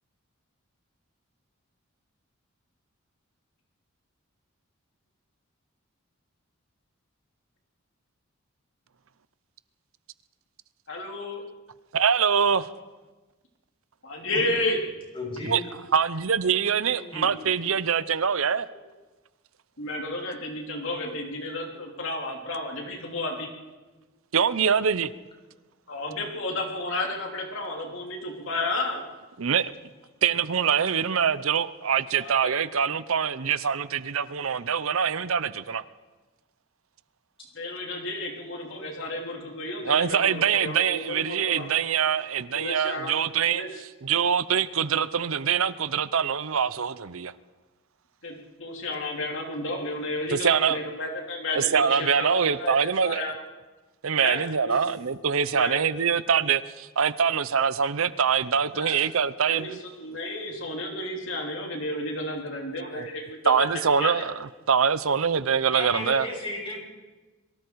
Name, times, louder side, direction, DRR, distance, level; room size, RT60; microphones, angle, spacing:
voice 1, 10.9-11.4 14.0-14.8 19.8-23.5 25.9-29.0 32.2-32.5 37.5-41.8 42.5-43.1 43.5-43.7 48.2-53.3 54.2-54.9 55.5-55.8 58.7-59.0 59.5-59.7 60.0-63.7 64.0-64.1, left 2 dB, 60° left, 3.2 m, -32 dB
voice 2, 11.9-12.7 15.4-15.6 15.9-18.7 24.3-25.1 29.4-29.7 30.2-35.8 39.8-47.3 50.3-50.8 51.5-53.3 54.0-59.8 62.9-63.1 63.5-66.3, right 7 dB, 70° right, 0.7 m, -24 dB
voice 3, 15.1-15.6 16.9-17.3 65.7-66.8, left 2 dB, 25° left, 6.9 m, -34 dB
25.5 x 23.5 x 4.7 m
head